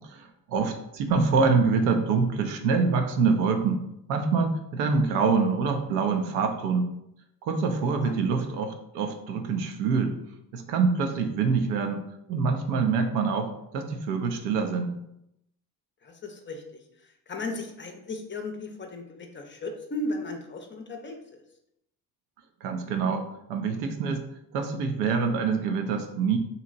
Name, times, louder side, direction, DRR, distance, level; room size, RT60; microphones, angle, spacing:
voice 1, 0.0-3.8 4.1-6.9 7.4-10.1 10.5-12.0 12.3-15.0 22.6-24.2 24.5-26.4, right 4 dB, 75° right, 5 dB, 0.6 m, -25 dB
voice 2, 16.0-21.4, left 2 dB, 25° left, 3 dB, 0.5 m, -36 dB
2.8 x 2.7 x 2.5 m, 0.80 s
hypercardioid pair, 50°, 46 cm